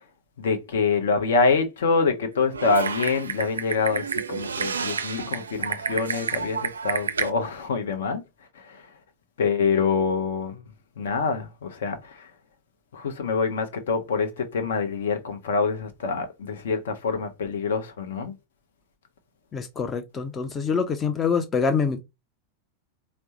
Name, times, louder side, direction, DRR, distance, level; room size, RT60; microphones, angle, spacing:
voice 1, 0.4-8.2 9.4-10.6 11.0-12.0 12.9-18.3, left 4 dB, 60° left, 0.7 m, -25 dB
Typing, 2.5-7.3, right 5 dB, 70° right, 0.4 m, -30 dB
voice 2, 19.5-22.0, left 5 dB, 20° left, 0.4 m, -25 dB
4.4 x 2.0 x 2.8 m
figure-of-eight pair, 90°, 0 cm